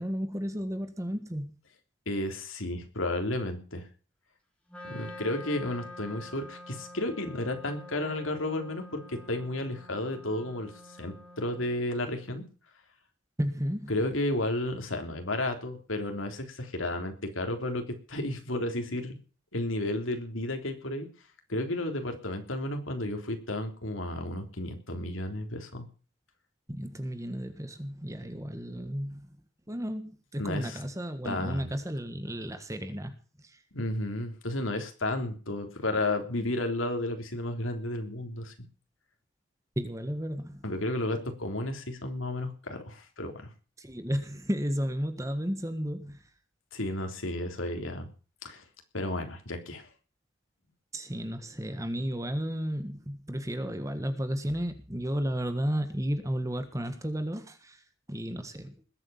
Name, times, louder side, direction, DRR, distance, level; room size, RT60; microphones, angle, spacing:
voice 1, 0.0-1.5 13.4-13.9 26.7-29.4 29.7-33.2 33.4-33.6 39.7-40.6 43.8-46.2 50.9-57.8 58.1-58.7, equal, 15° right, 9 dB, 1.5 m, -33 dB
voice 2, 2.0-3.8 4.8-12.4 13.9-17.8 18.1-19.2 19.5-21.1 21.5-25.9 30.4-30.8 31.2-31.7 33.7-38.5 40.6-43.5 46.7-48.1 48.4-48.6 48.9-49.9, left 1 dB, 90° left, 5 dB, 3.5 m, -32 dB
Wind instrument woodwind instrument, 4.7-11.9, left 1 dB, 5° left, 3.6 m, -47 dB
20.5 x 8.5 x 7.2 m, 0.39 s
head